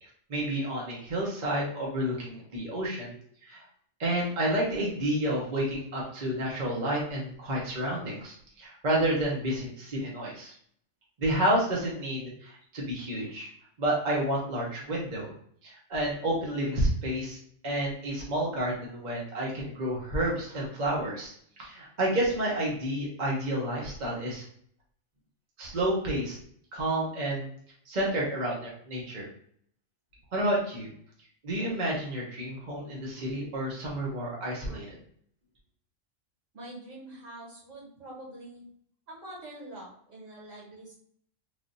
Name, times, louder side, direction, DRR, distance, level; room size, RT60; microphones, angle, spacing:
voice 1, 0.0-3.7 4.0-10.5 11.2-13.5 13.8-15.3 15.6-17.4 17.6-21.3 21.6-24.4 25.6-26.4 26.7-27.5 27.9-29.2 30.3-30.9 31.4-34.9, right 1 dB, 40° right, -4 dB, 0.9 m, -30 dB
voice 2, 36.5-38.7 39.1-40.9, right 1 dB, 70° right, -6 dB, 1.9 m, -45 dB
3.3 x 2.5 x 2.5 m, 0.63 s
omnidirectional pair, 1.4 m